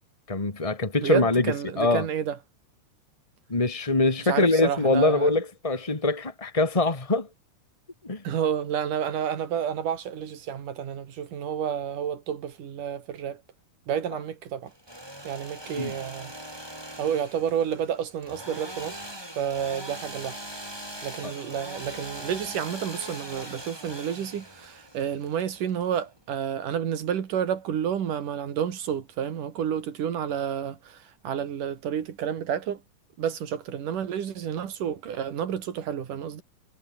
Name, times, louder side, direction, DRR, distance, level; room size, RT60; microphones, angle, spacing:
voice 1, 0.3-2.1 3.5-7.3 8.0-8.2 15.7-16.0 21.2-21.3, left 2 dB, 20° left, 0.9 m, -24 dB
voice 2, 1.0-2.4 4.2-5.3 8.2-13.4 13.9-14.7 15.2-16.3 17.0-19.0 19.4-20.4 21.0-31.0 31.2-32.8 33.2-36.4, right 8 dB, 70° right, 3.7 m, -30 dB
Engine / Sawing, 14.7-26.4, right 1 dB, 5° right, 6.1 m, -41 dB
omnidirectional pair, 3.9 m